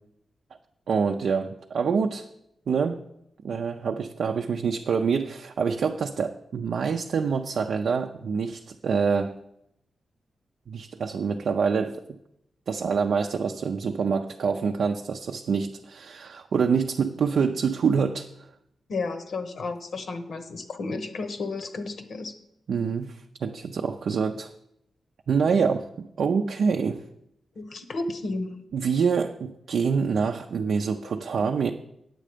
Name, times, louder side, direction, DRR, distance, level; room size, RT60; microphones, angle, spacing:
voice 1, 0.9-2.3 2.7-3.0 3.4-9.4 10.7-12.0 12.7-18.3 22.7-24.5 25.3-27.0 28.7-31.7, right 5 dB, 70° right, 4 dB, 0.5 m, -26 dB
voice 2, 18.9-22.3 25.3-25.5 27.6-28.6 31.4-31.5, left 3 dB, 65° left, 7 dB, 1.0 m, -32 dB
9.2 x 7.5 x 5.1 m, 0.81 s
wide cardioid pair, 125°, 0 cm